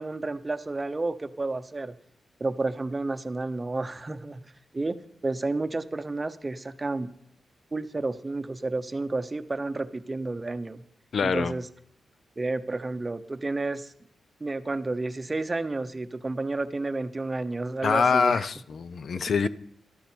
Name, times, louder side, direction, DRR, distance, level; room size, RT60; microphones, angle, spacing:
voice 1, 0.0-1.9 2.4-4.4 4.7-5.0 5.2-7.1 7.7-10.8 11.2-11.7 12.4-13.9 14.4-18.5, right 2 dB, 25° right, 0.8 m, -31 dB
voice 2, 11.1-11.5 17.8-19.5, left 5 dB, 60° left, 0.5 m, -24 dB
13.5 x 12.5 x 4.5 m
cardioid pair, 100°, 0 cm